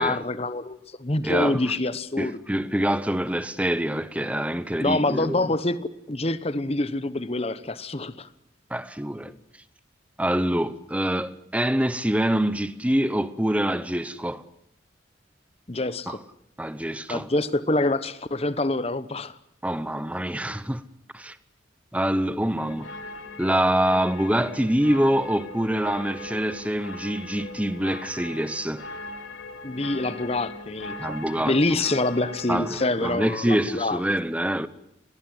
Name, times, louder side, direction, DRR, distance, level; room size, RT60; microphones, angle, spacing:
voice 1, 0.0-2.4 4.8-5.8 6.1-8.3 15.7-16.2 17.1-19.4 29.6-31.2 31.5-34.0, left 2 dB, 30° left, 1.0 m, -26 dB
voice 2, 1.2-1.7 2.2-5.4 8.7-9.4 10.2-14.4 16.1-16.2 16.6-17.3 19.6-20.8 21.1-21.4 21.9-22.9 23.4-28.8 31.0-31.8 32.5-34.7, right 1 dB, 5° right, 0.8 m, -25 dB
sound 1, 22.6-32.9, left 2 dB, 85° left, 3.3 m, -40 dB
22.0 x 18.0 x 9.5 m
head